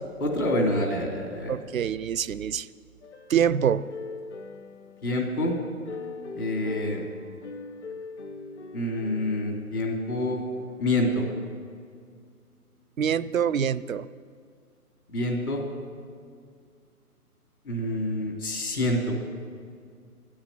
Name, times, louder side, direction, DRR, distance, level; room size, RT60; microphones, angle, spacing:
voice 1, 0.2-1.6 5.0-5.5 6.4-7.0 8.7-10.4 10.8-11.2 15.1-15.6 17.6-19.2, left 1 dB, 70° left, 0 dB, 2.9 m, -27 dB
voice 2, 1.5-2.7 3.3-3.9 13.0-14.1, right 8 dB, 60° right, 17 dB, 0.5 m, -25 dB
sound 1, 3.0-10.0 10.6-10.9, left 4 dB, 50° left, 0.9 m, -41 dB
10.0 x 8.7 x 9.8 m, 2.2 s
figure-of-eight pair, 140°, 46 cm